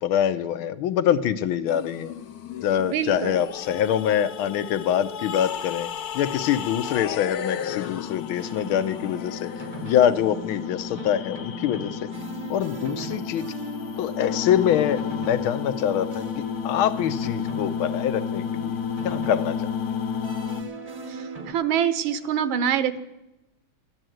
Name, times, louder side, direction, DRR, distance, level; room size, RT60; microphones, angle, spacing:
voice 1, 0.0-2.1 2.6-5.9 6.1-9.5 9.8-12.1 12.5-13.5 14.0-18.8 19.0-19.7, left 10 dB, 80° left, 12 dB, 1.6 m, -25 dB
sound 1, 1.7-20.6, left 8 dB, 65° left, 1.0 m, -32 dB
voice 2, 2.8-3.4 21.5-23.0, right 8 dB, 75° right, 13 dB, 1.6 m, -25 dB
sound 2, 8.4-21.5, right 3 dB, 35° right, 0.6 m, -39 dB
13.0 x 9.9 x 7.8 m, 0.96 s
omnidirectional pair, 2.3 m